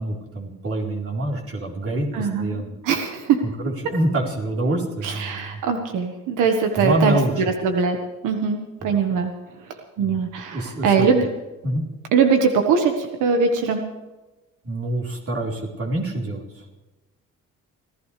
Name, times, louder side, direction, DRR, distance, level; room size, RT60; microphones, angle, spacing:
voice 1, 0.0-2.8 3.4-5.6 6.8-7.4 8.8-9.0 10.0-10.2 10.5-11.1 11.6-11.8 14.6-16.7, right 1 dB, 50° right, -2 dB, 4.1 m, -26 dB
voice 2, 2.1-3.4 5.0-7.2 7.6-8.0 8.2-9.3 10.0-11.3 12.1-13.8, right 5 dB, 90° right, 4 dB, 1.6 m, -21 dB
26.0 x 15.0 x 3.4 m, 1.1 s
cardioid pair, 90°, 30 cm